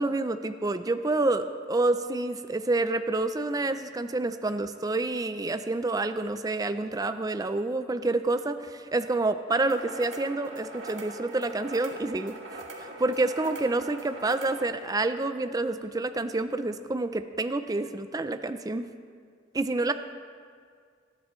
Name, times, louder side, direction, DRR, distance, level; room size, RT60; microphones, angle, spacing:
voice 1, 0.0-18.9 19.5-19.9, right 2 dB, 20° right, 10 dB, 0.4 m, -28 dB
sound 1, 9.5-14.6, right 2 dB, 70° right, 1.9 m, -42 dB
20.0 x 14.0 x 3.1 m, 2.1 s
head